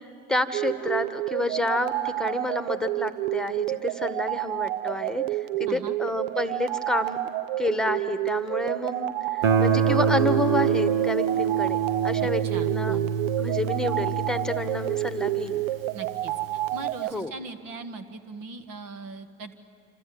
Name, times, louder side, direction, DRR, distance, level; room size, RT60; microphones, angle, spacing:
voice 1, 0.3-5.4 5.7-7.2 7.6-13.0 13.4-15.6 17.1-17.3, left 1 dB, ahead, 10 dB, 1.5 m, -29 dB
sound 1, 0.5-17.1, right 15 dB, 70° right, 0.6 m, -30 dB
voice 2, 5.7-6.0 12.2-13.2 15.9-19.5, right 3 dB, 55° right, 9 dB, 1.7 m, -40 dB
Guitar, 9.4-16.1, right 6 dB, 85° right, 1.5 m, -26 dB
27.0 x 26.0 x 7.9 m, 2.4 s
hypercardioid pair, 75°, 39 cm